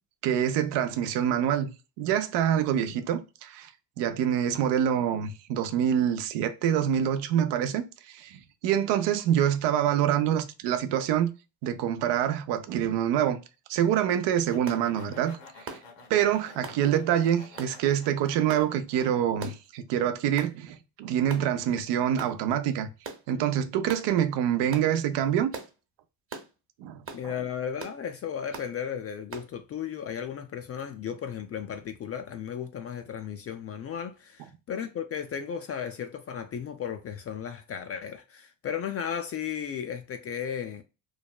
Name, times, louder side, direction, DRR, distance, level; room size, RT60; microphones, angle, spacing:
voice 1, 0.2-1.7 2.0-3.7 4.0-11.3 11.6-13.4 13.7-15.4 15.6-15.8 16.1-22.9 23.3-25.5 26.8-27.0, right 10 dB, 75° right, 0.6 m, -26 dB
sound 1, 14.2-19.1, left 4 dB, 85° left, 1.4 m, -51 dB
sound 2, 14.7-14.8 15.7-15.9 16.6-16.8 17.6-17.8 18.5-18.7 19.4-19.7 20.4-20.5 21.3-21.5 22.2-22.4 23.0-23.2 23.9-24.1 24.7-24.9 25.5-25.7 26.3-26.5 27.1-27.2 27.8-28.0 28.5-28.7 29.3-29.5, right 4 dB, 30° right, 0.9 m, -40 dB
voice 2, 27.1-40.8, left 8 dB, 35° left, 0.4 m, -35 dB
3.2 x 2.1 x 2.3 m
supercardioid pair, 80°, 43 cm